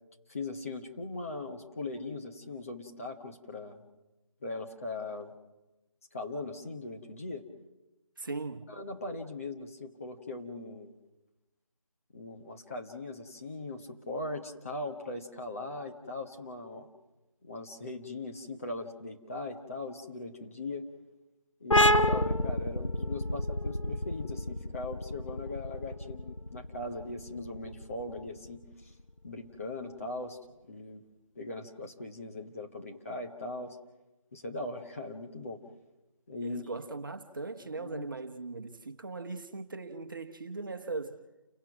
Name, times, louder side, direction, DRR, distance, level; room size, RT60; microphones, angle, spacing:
voice 1, 0.3-3.8 4.4-5.3 6.1-7.5 8.7-10.9 12.1-16.9 17.4-20.9 21.6-28.9 29.2-30.4 30.7-31.0 31.3-33.8 34.3-35.6 36.3-36.7 37.6-38.1, left 2 dB, 25° left, 1.3 m, -40 dB
voice 2, 8.2-8.7 36.4-41.2, right 3 dB, 40° right, 1.3 m, -39 dB
sound 1, 21.7-29.0, left 1 dB, 70° left, 1.1 m, -29 dB
29.5 x 17.5 x 6.0 m
figure-of-eight pair, 160°, 17 cm